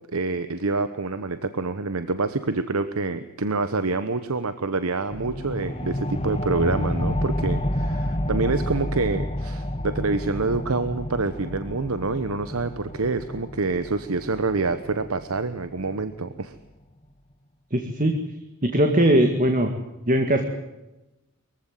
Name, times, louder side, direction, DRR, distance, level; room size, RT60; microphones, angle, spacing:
voice 1, 0.1-16.5, right 3 dB, 75° right, 12 dB, 1.1 m, -27 dB
sound 1, 5.1-16.2, left 1 dB, 25° left, 1.1 m, -30 dB
voice 2, 17.7-18.2 18.6-19.7 20.1-20.4, right 1 dB, 40° right, 5 dB, 2.0 m, -20 dB
23.5 x 15.5 x 9.1 m, 1.0 s
head